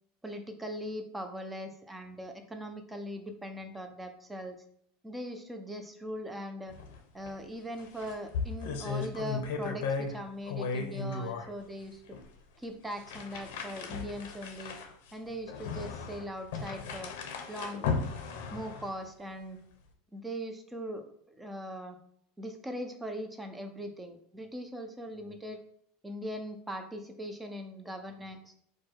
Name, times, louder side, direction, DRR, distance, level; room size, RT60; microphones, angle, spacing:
voice 1, 0.2-4.6 5.0-6.8 7.1-12.2 12.6-14.8 15.1-17.1 17.5-17.9 18.5-19.6 20.1-22.0 22.4-25.6 26.0-28.5, equal, 5° right, 6 dB, 0.4 m, -40 dB
sound 1, 6.7-7.0 7.2-7.3 7.7-10.2 10.5-11.5 12.1-12.3 12.9-19.0, left 4 dB, 75° left, 0.6 m, -36 dB
4.6 x 2.2 x 4.5 m, 0.66 s
supercardioid pair, 175°, 0 cm